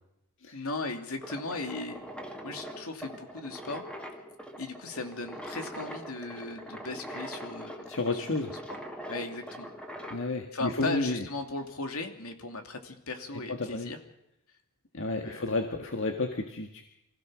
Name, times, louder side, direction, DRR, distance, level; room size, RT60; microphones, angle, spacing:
voice 1, 0.5-2.0 2.4-3.8 4.6-8.8 9.1-9.7 10.5-14.0 15.2-15.5, left 3 dB, 80° left, 5 dB, 2.6 m, -37 dB
sound 1, 1.2-10.3, equal, 5° left, 2.3 m, -42 dB
voice 2, 7.9-8.5 10.1-11.2 13.6-13.9 14.9-16.9, left 2 dB, 65° left, 4 dB, 1.7 m, -31 dB
25.5 x 16.0 x 6.3 m, 0.84 s
head